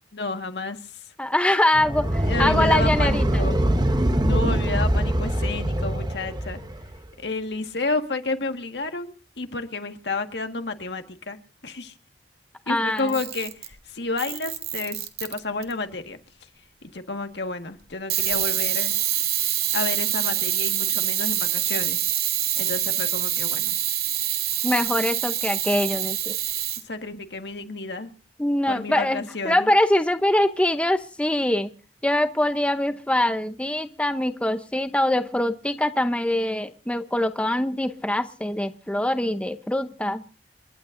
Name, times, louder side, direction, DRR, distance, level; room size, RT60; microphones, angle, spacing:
voice 1, 0.1-1.0 2.3-3.6 4.2-6.6 7.2-11.9 12.7-16.2 16.8-18.9 19.7-22.0 22.6-23.7 26.8-28.1 28.7-29.7, left 3 dB, 70° left, 6 dB, 1.7 m, -31 dB
voice 2, 1.2-3.4 12.7-13.1 24.6-26.4 28.4-31.7 32.0-40.2, left 1 dB, 5° left, 9 dB, 0.7 m, -23 dB
sound 1, 1.7-6.9, right 1 dB, 25° right, 1.1 m, -23 dB
Camera, 13.0-13.7 14.2-15.7 18.1-26.8, right 12 dB, 60° right, 2.3 m, -25 dB
30.0 x 11.5 x 2.6 m, 0.36 s
head